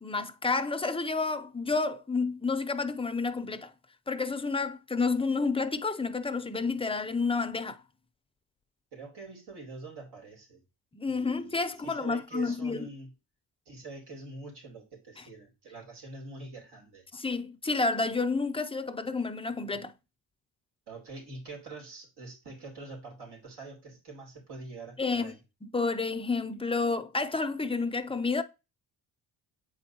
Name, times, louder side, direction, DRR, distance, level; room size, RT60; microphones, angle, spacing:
voice 1, 0.0-3.7 4.1-7.8 10.9-12.9 17.1-19.9 25.0-25.3 25.6-28.4, left 4 dB, 15° left, 0.5 m, -30 dB
voice 2, 8.9-10.6 11.0-13.1 13.6-17.0 19.7-19.8 20.9-25.4, right 3 dB, 80° right, 3.4 m, -45 dB
7.9 x 4.4 x 2.8 m
cardioid pair, 110°, 39 cm